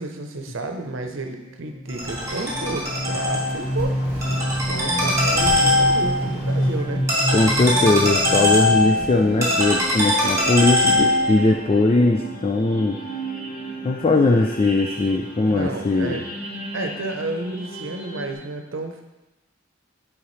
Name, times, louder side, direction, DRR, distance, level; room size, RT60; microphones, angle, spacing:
voice 1, 0.0-4.4 4.7-7.1 15.5-16.3 16.7-19.0, right 2 dB, 75° right, 5 dB, 0.8 m, -31 dB
sound 1, 1.6-18.3, equal, 45° left, 1.1 m, -30 dB
Ringtone, 1.9-11.4, left 1 dB, 15° right, 2.3 m, -22 dB
voice 2, 7.3-13.0 13.8-16.2, left 2 dB, 30° left, 2 dB, 0.4 m, -20 dB
10.0 x 4.9 x 3.2 m, 1.0 s
head